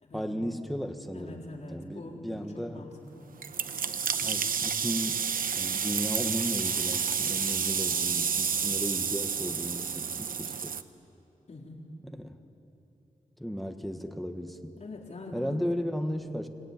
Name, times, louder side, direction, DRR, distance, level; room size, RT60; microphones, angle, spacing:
voice 1, 0.1-1.4 1.7-2.8 4.2-5.2 5.5-10.8 12.0-12.4 13.4-14.7 15.3-16.5, equal, ahead, 6 dB, 1.4 m, -35 dB
voice 2, 1.1-3.3 11.5-11.9 14.8-15.6, left 2 dB, 50° left, -1 dB, 3.9 m, -44 dB
sound 1, 3.4-10.8, right 6 dB, 75° right, 0.8 m, -30 dB
24.5 x 21.5 x 9.6 m, 2.9 s
wide cardioid pair, 155°, 15 cm